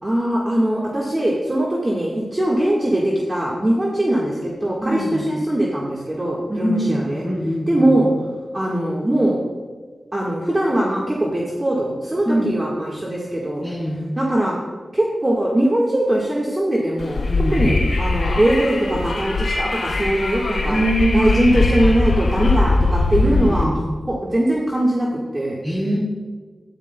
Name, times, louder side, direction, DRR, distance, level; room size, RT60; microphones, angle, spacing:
voice 1, 0.0-7.2 7.7-8.1 8.5-9.4 10.1-13.6 14.2-14.5 14.9-20.8 21.1-23.7 24.1-25.6, right 1 dB, 25° right, -4 dB, 1.5 m, -21 dB
voice 2, 4.8-5.3 6.5-7.9 12.2-12.6 13.6-14.0 17.3-17.6 20.7-21.7 23.2-23.8 25.6-26.0, right 1 dB, 5° right, -3 dB, 3.3 m, -23 dB
Wind, 17.0-23.6, left 3 dB, 75° left, 2.9 m, -21 dB
14.0 x 9.8 x 2.2 m, 1.4 s
wide cardioid pair, 75°, 0 cm